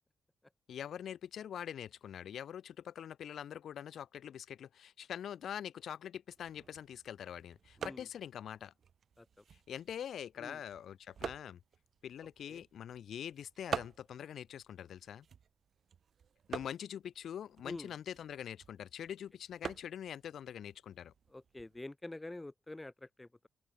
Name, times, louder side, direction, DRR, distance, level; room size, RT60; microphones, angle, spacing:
voice 1, 0.7-8.7 9.7-11.6 12.0-15.3 16.5-21.1, left 9 dB, 75° left, 4.2 m, -44 dB
sound 1, 6.3-21.8, right 7 dB, 65° right, 3.7 m, -48 dB
voice 2, 21.3-23.5, left 2 dB, 20° left, 6.4 m, -47 dB
open air
supercardioid pair, 55°, 0 cm